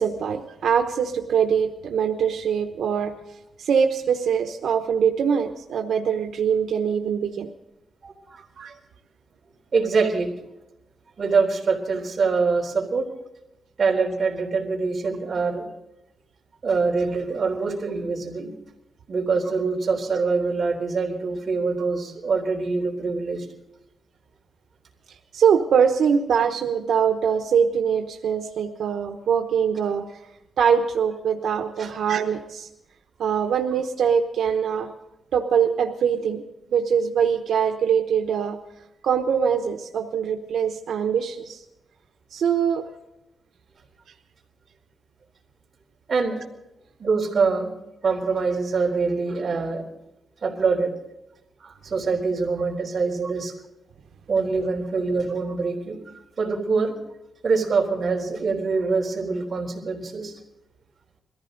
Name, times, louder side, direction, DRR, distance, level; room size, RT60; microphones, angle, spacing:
voice 1, 0.0-3.1 3.6-7.5 8.6-8.7 25.3-30.1 30.6-32.7 33.2-34.9 35.3-36.4 36.7-38.6 39.0-41.6 42.3-42.8, right 7 dB, 90° right, 4 dB, 1.0 m, -23 dB
voice 2, 8.0-8.4 9.7-10.3 11.2-13.1 13.8-15.6 16.6-18.5 19.1-23.5 31.8-31.9 46.1-46.4 47.0-47.7 48.0-49.8 50.4-50.9 51.6-53.5 54.3-56.9 57.4-60.4, right 4 dB, 35° right, -1 dB, 3.7 m, -24 dB
22.0 x 14.5 x 3.9 m, 0.91 s
wide cardioid pair, 170°, 0 cm